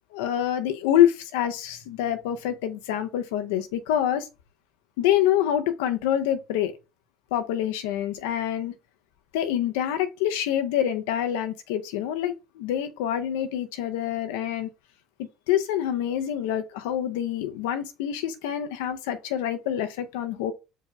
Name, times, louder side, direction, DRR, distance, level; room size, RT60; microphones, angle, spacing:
voice 1, 0.1-4.3 5.0-6.7 7.3-8.7 9.3-14.7 15.5-20.5, left 11 dB, 80° left, 0.5 m, -26 dB
4.6 x 2.0 x 4.7 m
hypercardioid pair, 70°, 0 cm